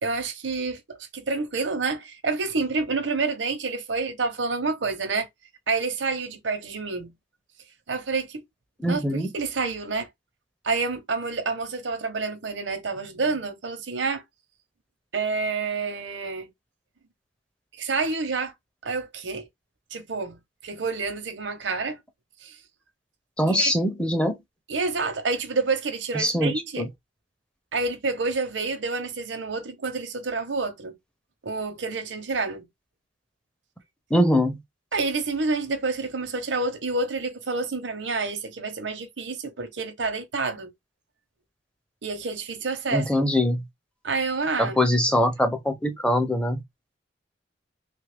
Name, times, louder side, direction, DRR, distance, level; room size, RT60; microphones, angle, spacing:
voice 1, 0.0-5.3 5.7-7.1 7.9-8.4 8.8-10.1 10.6-14.2 15.1-16.5 17.8-18.5 18.8-19.5 19.9-20.4 20.6-22.0 22.4-22.6 23.5-23.7 24.7-26.9 27.7-31.0 31.4-32.7 34.9-40.7 42.0-43.3 44.0-44.8, right 4 dB, 85° right, 0.8 m, -28 dB
voice 2, 8.8-9.3 23.4-24.4 26.1-26.9 34.1-34.6 42.9-43.6 44.6-46.6, equal, 5° left, 0.5 m, -23 dB
3.0 x 2.4 x 3.3 m
head